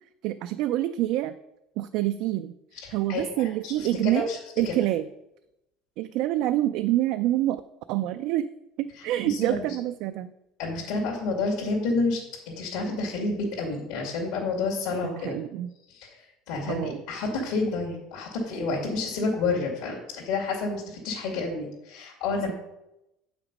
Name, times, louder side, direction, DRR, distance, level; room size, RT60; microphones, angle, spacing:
voice 1, 0.2-1.4 1.8-4.3 4.6-5.1 6.0-7.6 7.9-8.5 8.8-10.3 15.2-15.7 16.7-17.0, right 14 dB, 55° right, 10 dB, 0.3 m, -27 dB
voice 2, 2.8-4.4 4.7-4.8 9.2-9.7 10.6-15.4 15.9-22.5, left 3 dB, 75° left, -2 dB, 2.2 m, -29 dB
8.1 x 5.8 x 5.2 m, 0.89 s
cardioid pair, 170°, 0 cm